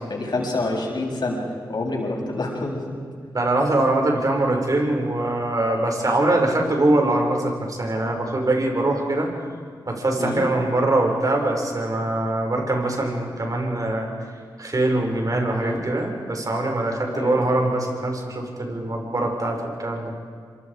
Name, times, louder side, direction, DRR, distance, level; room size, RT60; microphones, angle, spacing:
voice 1, 0.1-1.4 1.7-2.8 6.4-6.5 10.2-10.4 15.6-15.8 17.1-17.4, left 2 dB, 55° left, -1 dB, 7.7 m, -27 dB
voice 2, 3.3-9.3 9.9-14.1 14.6-20.1, right 2 dB, 45° right, 1 dB, 6.1 m, -23 dB
26.5 x 26.0 x 5.1 m, 2.1 s
supercardioid pair, 45°, 9 cm